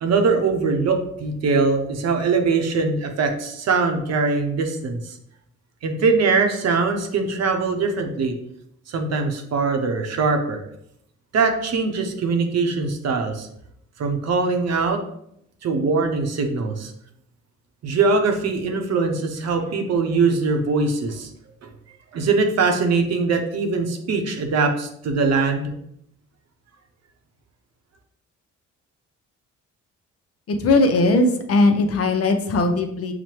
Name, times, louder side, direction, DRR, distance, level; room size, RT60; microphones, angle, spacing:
voice 1, 0.0-5.2 5.8-8.3 8.9-10.6 11.3-13.5 14.0-15.0 15.6-16.9 17.8-21.3 21.6-21.7 22.1-25.7, right 4 dB, 60° right, 4 dB, 0.7 m, -22 dB
voice 2, 30.5-33.1, left 2 dB, 50° left, 6 dB, 0.6 m, -19 dB
5.8 x 2.1 x 3.0 m, 0.74 s
cardioid pair, 90°, 30 cm